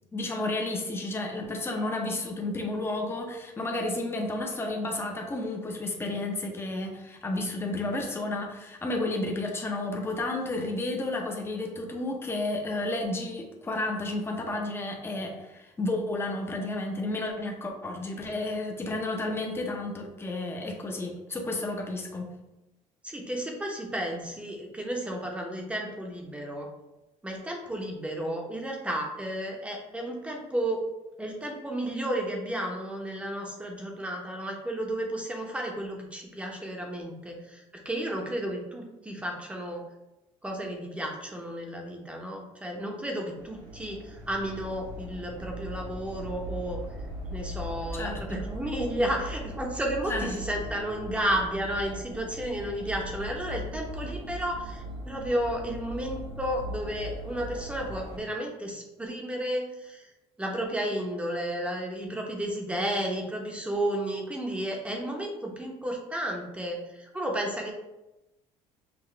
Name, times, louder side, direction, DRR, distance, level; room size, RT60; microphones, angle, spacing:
voice 1, 0.1-22.3 47.9-48.4 50.1-50.4, left 2 dB, 20° left, 1 dB, 0.8 m, -32 dB
voice 2, 23.0-26.7 27.2-30.8 31.2-39.8 40.4-46.8 47.3-60.1 60.4-67.7, right 1 dB, 10° right, 0 dB, 0.9 m, -32 dB
sound 1, 43.4-58.2, equal, 90° right, 1.4 m, -39 dB
5.9 x 2.4 x 3.2 m, 0.96 s
cardioid pair, 125°, 13 cm